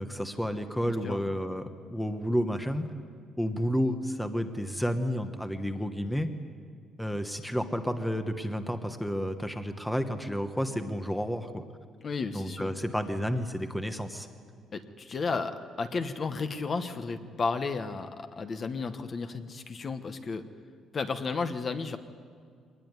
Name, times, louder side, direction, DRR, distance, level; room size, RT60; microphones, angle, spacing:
voice 1, 0.0-2.9 3.4-6.3 7.0-11.6 12.3-14.3, equal, ahead, 7 dB, 1.1 m, -31 dB
voice 2, 0.9-1.3 12.0-12.7 14.7-20.4 20.9-22.0, left 4 dB, 30° left, 9 dB, 1.1 m, -33 dB
23.5 x 19.5 x 9.6 m, 2.2 s
cardioid pair, 165°, 0 cm